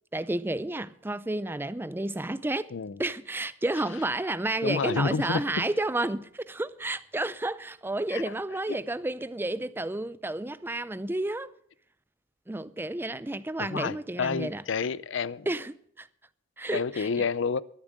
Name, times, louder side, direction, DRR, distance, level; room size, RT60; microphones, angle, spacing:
voice 1, 0.1-2.7 3.0-11.5 12.5-14.6 15.5-16.1 16.6-17.1, right 2 dB, 10° right, 0.4 m, -31 dB
voice 2, 4.6-5.7 8.1-8.2 8.7-8.8 13.6-15.5 16.7-17.6, left 5 dB, 65° left, 0.5 m, -29 dB
12.5 x 11.0 x 6.4 m
head